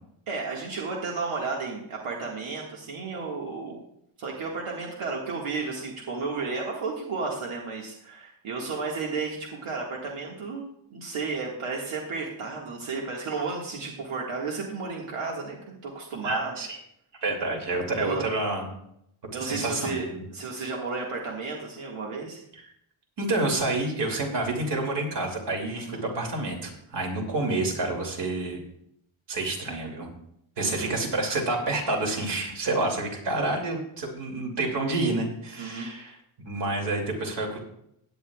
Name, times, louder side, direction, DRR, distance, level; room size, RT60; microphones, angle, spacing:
voice 1, 0.3-3.8 4.2-16.6 18.0-18.3 19.3-22.4 25.8-26.0 30.6-30.9 35.6-35.9, right 4 dB, 85° right, -2 dB, 1.9 m, -33 dB
voice 2, 16.2-16.8 17.2-18.7 19.4-20.2 22.5-22.7 23.2-28.6 29.3-30.1 30.6-36.2 36.4-37.6, right 2 dB, 55° right, 1 dB, 2.7 m, -28 dB
16.5 x 9.8 x 2.4 m, 0.75 s
wide cardioid pair, 165°, 48 cm